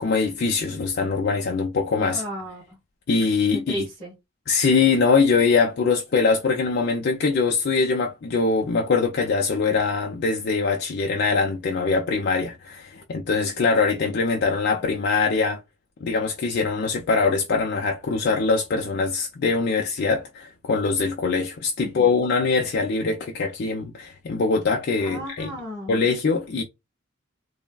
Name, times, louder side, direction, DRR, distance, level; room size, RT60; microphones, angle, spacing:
voice 1, 0.0-2.2 3.1-3.8 4.5-15.6 16.0-25.5 25.9-26.6, left 4 dB, 55° left, 0.4 m, -22 dB
voice 2, 2.1-2.8 3.7-4.1 21.8-22.1 25.0-25.9, equal, 30° right, 1.5 m, -34 dB
3.2 x 2.1 x 2.2 m
head